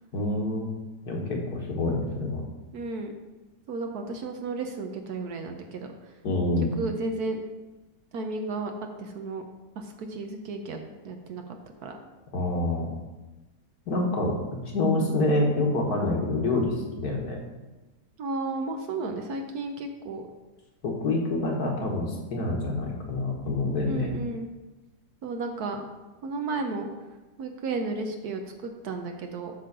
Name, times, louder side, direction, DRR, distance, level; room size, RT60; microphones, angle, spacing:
voice 1, 0.1-0.8 1.1-2.4 6.2-6.7 12.3-12.9 13.9-14.4 14.7-17.4 20.8-24.1, left 2 dB, 60° left, 0 dB, 1.9 m, -27 dB
voice 2, 2.7-3.1 3.7-5.9 6.8-7.4 8.1-9.4 9.8-10.8 11.0-11.4 11.8-12.0 18.2-20.2 23.9-24.5 25.2-25.9 26.2-26.9 27.4-29.5, right 3 dB, 65° right, 5 dB, 1.2 m, -33 dB
8.5 x 3.8 x 6.6 m, 1.1 s
omnidirectional pair, 1.9 m